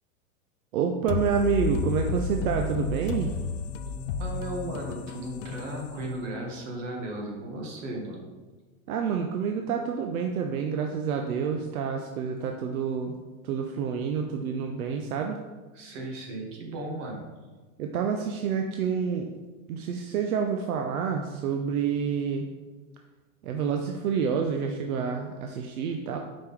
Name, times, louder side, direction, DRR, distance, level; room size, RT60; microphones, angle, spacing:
voice 1, 0.7-3.3 8.9-13.1 13.4-15.4 17.8-19.3 19.7-22.5 23.4-26.2, right 6 dB, 90° right, 3 dB, 0.7 m, -28 dB
sound 1, 1.1-6.7, left 5 dB, 55° left, 0.6 m, -32 dB
voice 2, 3.9-8.2 15.7-17.2, right 1 dB, 60° right, 0 dB, 1.9 m, -36 dB
5.9 x 5.1 x 3.7 m, 1.3 s
supercardioid pair, 140°, 42 cm